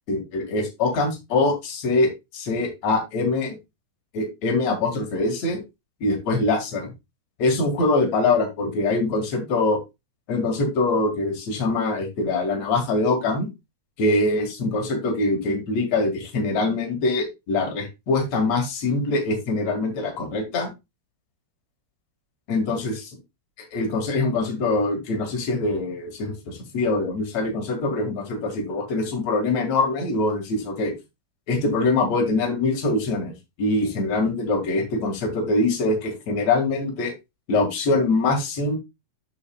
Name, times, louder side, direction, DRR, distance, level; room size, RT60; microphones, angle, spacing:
voice 1, 0.1-3.6 4.1-5.6 6.0-6.9 7.4-9.8 10.3-13.5 14.0-20.7 22.5-22.9 23.7-30.9 31.5-33.3 33.6-37.1 37.5-38.8, left 2 dB, 55° left, 2 dB, 1.9 m, -23 dB
8.4 x 7.3 x 2.3 m, 0.23 s
omnidirectional pair, 6.0 m